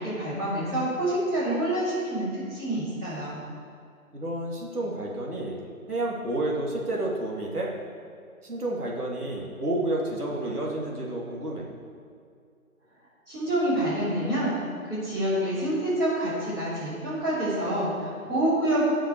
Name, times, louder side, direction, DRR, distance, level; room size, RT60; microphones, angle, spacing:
voice 1, 0.0-3.4 13.3-14.5 14.9-18.8, right 1 dB, 5° right, -13 dB, 3.1 m, -27 dB
voice 2, 4.1-5.6 5.9-7.7 8.4-11.7, right 1 dB, 85° right, -3 dB, 2.7 m, -30 dB
17.0 x 6.6 x 4.6 m, 2.4 s
figure-of-eight pair, 155°, 44 cm